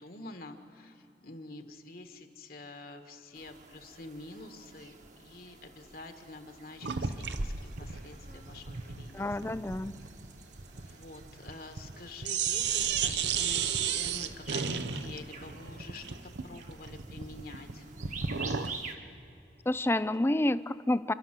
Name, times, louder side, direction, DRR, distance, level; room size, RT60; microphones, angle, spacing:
voice 1, 0.0-10.1 10.7-17.9, left 2 dB, 50° left, 6 dB, 1.6 m, -47 dB
sound 1, 3.3-19.0, right 4 dB, 40° right, 1.5 m, -50 dB
sound 2, 6.8-12.0 12.2-18.8, right 6 dB, 70° right, 0.9 m, -34 dB
voice 2, 9.1-9.9 19.7-21.1, left 1 dB, 15° left, 15 dB, 0.4 m, -29 dB
30.0 x 12.0 x 7.6 m, 2.8 s
head